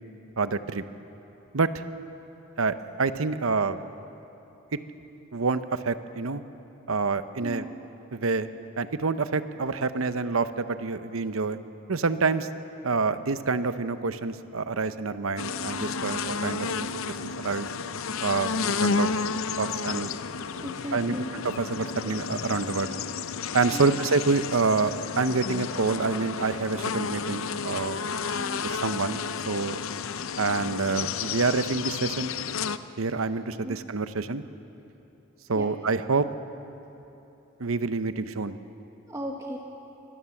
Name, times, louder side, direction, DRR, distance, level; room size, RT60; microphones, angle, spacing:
voice 1, 0.4-0.8 1.5-1.8 2.6-3.8 4.7-4.8 5.3-6.4 6.9-7.7 8.1-8.5 8.8-11.6 11.9-12.5 12.8-17.7 18.2-18.5 18.8-19.2 19.6-20.1 20.9-22.9 23.5-28.0 28.6-29.8 30.4-32.3 33.0-34.4 35.5-36.3 37.6-38.6, right 4 dB, 90° right, 12 dB, 0.8 m, -27 dB
voice 2, 7.4-7.8 20.6-21.3 23.7-24.0 28.3-28.6 33.6-33.8 35.5-35.7 39.1-39.6, equal, 15° right, 0 dB, 1.2 m, -36 dB
sound 1, 15.4-32.8, left 5 dB, 85° left, 0.6 m, -32 dB
24.0 x 17.5 x 7.2 m, 3.0 s
head